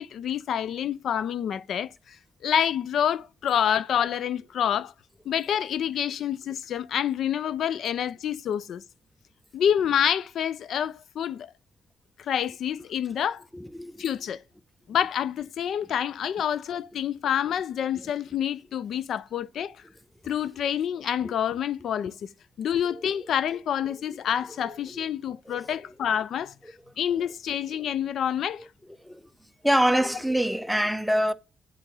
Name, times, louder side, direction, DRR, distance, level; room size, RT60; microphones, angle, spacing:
voice 1, 0.0-2.2 2.4-4.9 5.3-8.8 9.5-11.5 12.2-13.4 14.0-14.4 14.9-19.8 20.2-22.3 22.6-28.7, left 9 dB, 65° left, 0.3 m, -27 dB
voice 2, 13.5-14.0 21.2-21.3 25.5-25.8 29.0-29.2 29.6-31.3, equal, ahead, 0.5 m, -25 dB
8.1 x 3.7 x 5.3 m
cardioid pair, 90°, 0 cm